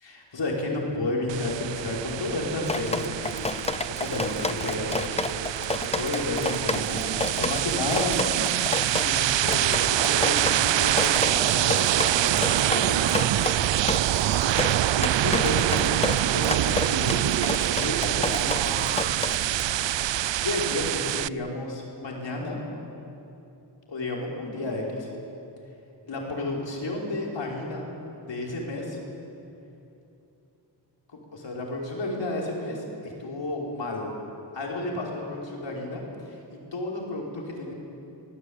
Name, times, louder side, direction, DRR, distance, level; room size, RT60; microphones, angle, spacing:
voice 1, 0.0-3.5 4.0-5.7 5.9-8.2 8.5-8.6 9.0-13.6 14.0-14.3 14.9-17.4 17.8-19.3 20.4-22.6 23.9-25.1 26.0-27.8 28.2-29.0 31.1-34.1 34.5-37.7, left 2 dB, 75° left, -2 dB, 5.3 m, -32 dB
sound 1, 1.3-21.3, right 12 dB, 80° right, 0.5 m, -25 dB
Drip, 2.6-19.7, left 3 dB, 15° left, 0.6 m, -31 dB
25.0 x 19.5 x 8.8 m, 2.9 s
wide cardioid pair, 140°, 44 cm